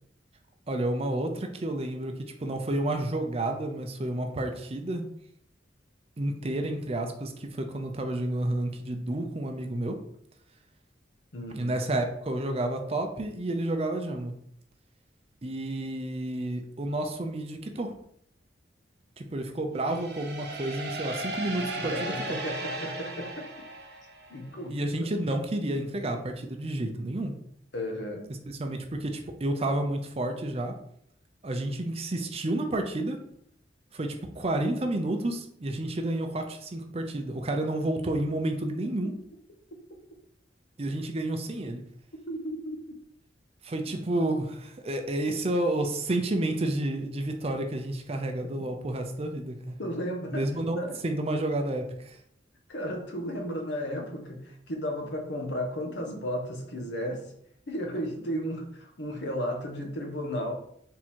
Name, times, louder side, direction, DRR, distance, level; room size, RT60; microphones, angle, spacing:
voice 1, 0.7-5.1 6.2-10.0 11.5-14.3 15.4-17.9 19.2-22.4 24.7-27.3 28.5-30.7 31.4-33.2 33.9-39.1 40.8-41.8 43.6-49.8 50.3-52.2, right 1 dB, 30° right, 4 dB, 0.5 m, -30 dB
voice 2, 11.3-11.7 21.6-23.5 24.3-24.9 27.7-28.3 42.3-42.8 49.8-50.4 50.8-51.0 52.7-57.2 57.7-60.5, equal, 70° left, 3 dB, 0.8 m, -34 dB
sound 1, 19.8-24.5, right 2 dB, 60° right, 0.8 m, -36 dB
3.6 x 2.9 x 4.3 m, 0.68 s
head